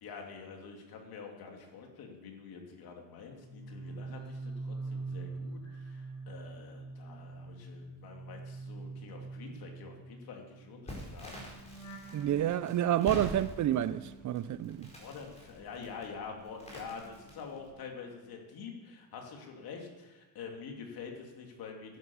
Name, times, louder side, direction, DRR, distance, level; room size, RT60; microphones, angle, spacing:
voice 1, 0.0-11.3 14.9-22.0, left 5 dB, 65° left, 2.7 m, -46 dB
sound 1, 3.3-15.6 15.9-18.0 18.3-18.6, right 3 dB, 40° left, 5.8 m, -46 dB
Crackle, 10.9-17.7, equal, 15° left, 4.5 m, -46 dB
voice 2, 12.1-14.9, right 11 dB, 50° right, 0.5 m, -29 dB
11.0 x 11.0 x 7.1 m
cardioid pair, 145°, 40 cm